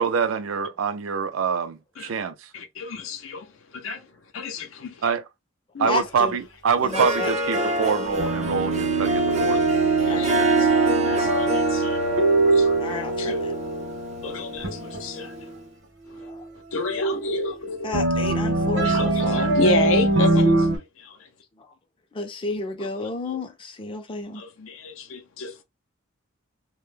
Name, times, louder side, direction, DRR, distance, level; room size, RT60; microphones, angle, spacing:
voice 1, 0.0-2.5 5.0-5.2 5.8-9.6, right 6 dB, 85° right, 0.4 m, -25 dB
voice 2, 2.5-4.1 4.3-5.1 5.7-5.9 9.5-9.6 10.1-12.0 12.4-13.4 14.2-15.5 16.1-16.3 16.7-18.0 18.8-21.3 22.8-22.9 23.2-23.4 24.3-25.6, left 3 dB, 85° left, 0.5 m, -31 dB
voice 3, 5.8-6.4 6.8-7.8 10.1-10.3 12.8-13.5 16.2-16.5 17.8-19.6 21.6-21.7 22.1-24.4, left 3 dB, 25° left, 0.4 m, -32 dB
Harp, 6.8-15.4, right 3 dB, 35° right, 0.5 m, -24 dB
sound 1, 8.1-14.1 14.6-15.3 16.3-16.4 17.9-20.8, right 2 dB, 65° right, 0.8 m, -23 dB
2.1 x 2.0 x 3.1 m
head